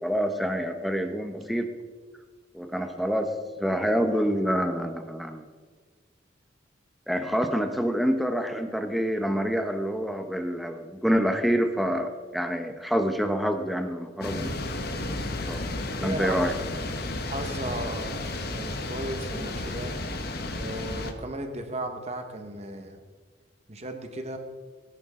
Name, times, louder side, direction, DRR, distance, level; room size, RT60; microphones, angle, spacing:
voice 1, 0.0-1.7 2.5-5.4 7.1-14.7 15.0-15.6 15.9-16.5, equal, ahead, 6 dB, 0.9 m, -27 dB
sound 1, 14.2-21.1, left 2 dB, 50° left, 1.2 m, -32 dB
voice 2, 16.0-16.5 17.2-20.0 20.6-23.0 23.7-24.4, right 1 dB, 35° right, 5 dB, 1.4 m, -35 dB
18.0 x 10.5 x 3.7 m, 1.5 s
head